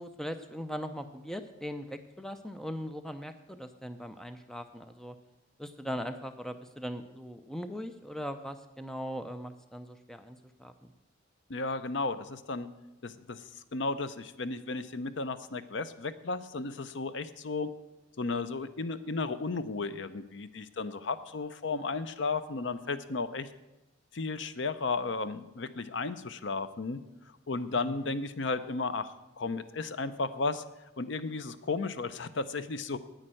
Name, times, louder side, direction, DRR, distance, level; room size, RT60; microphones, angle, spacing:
voice 1, 0.0-5.2 5.6-10.9 27.8-28.0, equal, ahead, 8 dB, 0.5 m, -40 dB
voice 2, 11.5-12.7 13.0-13.4 13.7-17.7 18.2-23.5 24.1-27.0 27.5-30.6 31.0-33.0, left 3 dB, 65° left, 13 dB, 0.6 m, -34 dB
9.8 x 8.9 x 7.6 m, 0.98 s
head